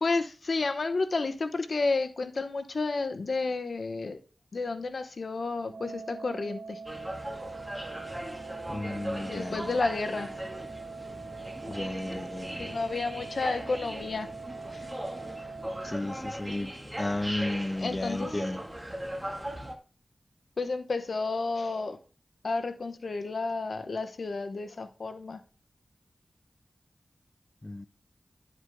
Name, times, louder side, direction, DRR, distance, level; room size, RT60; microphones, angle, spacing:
voice 1, 0.0-4.2 4.5-6.8 9.2-10.3 12.6-14.3 14.7-14.8 17.8-18.5 20.6-22.0 22.4-25.4, left 3 dB, 70° left, 0.9 m, -31 dB
Organ, 5.6-16.7, right 4 dB, 75° right, 1.8 m, -43 dB
sound 1, 6.8-19.7, right 1 dB, 10° right, 1.8 m, -39 dB
voice 2, 8.7-9.7 11.7-12.7 15.8-16.7 17.0-18.6 27.6-27.9, left 2 dB, 30° left, 0.5 m, -33 dB
11.5 x 8.0 x 2.2 m
wide cardioid pair, 85°, 0 cm